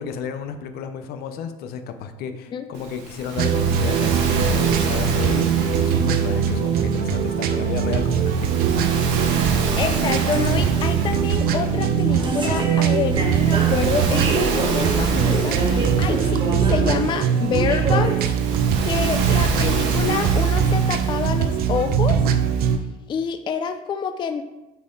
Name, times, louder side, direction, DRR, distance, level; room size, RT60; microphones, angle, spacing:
voice 1, 0.0-8.8, left 7 dB, 65° left, 7 dB, 0.7 m, -32 dB
Waves surf, 2.7-22.7, right 3 dB, 80° right, 1.2 m, -30 dB
sound 1, 3.4-22.8, right 8 dB, 60° right, 0.6 m, -21 dB
sound 2, 5.6-18.3, right 2 dB, 30° right, 1.3 m, -30 dB
voice 2, 9.5-18.1 18.8-22.2 23.1-24.4, left 6 dB, 30° left, 7 dB, 0.4 m, -27 dB
7.0 x 4.2 x 3.8 m, 1.0 s
cardioid pair, 120°, 17 cm